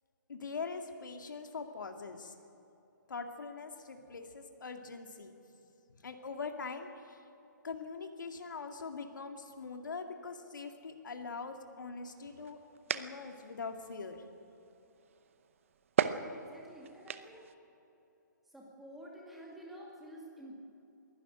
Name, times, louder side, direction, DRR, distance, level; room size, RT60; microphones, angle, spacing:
voice 1, 0.3-2.3 3.1-5.3 5.9-7.2 7.6-12.6 12.9-14.2, left 4 dB, 75° left, 5 dB, 2.2 m, -42 dB
sound 1, 12.1-17.5, right 8 dB, 40° right, 0.8 m, -39 dB
voice 2, 16.1-17.5 18.4-20.5, right 1 dB, ahead, -3 dB, 2.4 m, -50 dB
21.0 x 13.0 x 9.9 m, 2.9 s
hypercardioid pair, 165°, 10 cm